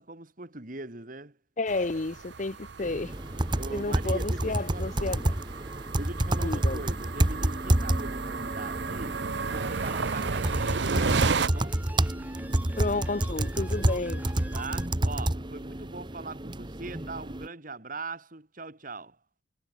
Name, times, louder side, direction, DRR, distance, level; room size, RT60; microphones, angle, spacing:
voice 1, 0.0-1.4 3.6-4.9 5.9-11.8 14.5-19.2, right 3 dB, 45° right, 2.0 m, -41 dB
voice 2, 1.6-3.1 3.7-5.3 6.4-6.8 12.8-14.2, left 3 dB, 40° left, 0.7 m, -31 dB
sound 1, 1.7-11.5, right 4 dB, 60° right, 0.7 m, -33 dB
sound 2, 2.8-17.5, right 1 dB, 25° right, 1.3 m, -29 dB
sound 3, 9.5-14.9, right 1 dB, 10° right, 4.7 m, -47 dB
head